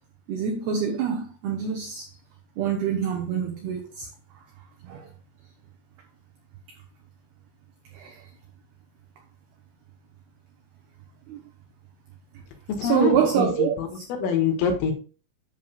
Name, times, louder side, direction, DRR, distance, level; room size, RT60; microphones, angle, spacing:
voice 1, 0.3-2.1 2.6-4.1 4.8-5.1 7.9-8.2 11.3-11.4 12.8-14.1, right 7 dB, 90° right, 2.2 m, -26 dB
voice 2, 12.8-13.9 14.2-14.9, left 6 dB, 80° left, 4.2 m, -25 dB
10.5 x 7.3 x 2.4 m
omnidirectional pair, 5.9 m